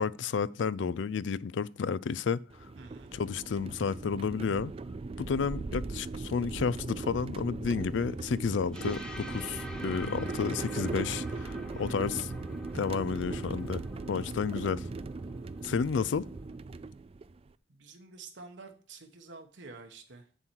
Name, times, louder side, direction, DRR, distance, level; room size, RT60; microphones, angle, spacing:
voice 1, 0.0-2.4 3.1-4.7 5.2-12.3 12.7-13.8 14.1-14.8 15.6-16.3, left 5 dB, 75° left, 0.4 m, -31 dB
sound 1, 2.5-17.5, right 3 dB, 30° right, 0.4 m, -39 dB
voice 2, 2.8-3.1 11.7-12.3 17.7-20.3, right 3 dB, 70° right, 1.0 m, -49 dB
sound 2, 8.7-16.6, left 1 dB, 5° left, 0.9 m, -47 dB
7.9 x 7.2 x 4.5 m
head